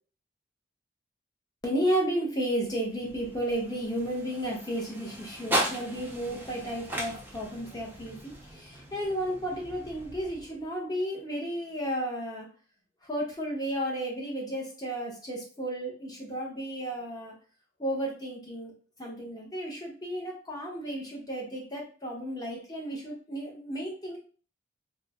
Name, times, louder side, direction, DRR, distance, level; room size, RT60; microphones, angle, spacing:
voice 1, 1.6-12.5 13.1-17.3 17.8-18.7 19.0-24.2, right 1 dB, 20° left, -2 dB, 0.8 m, -33 dB
sound 1, 2.5-10.8, right 1 dB, 10° right, 0.5 m, -37 dB
3.0 x 2.0 x 3.5 m, 0.39 s
head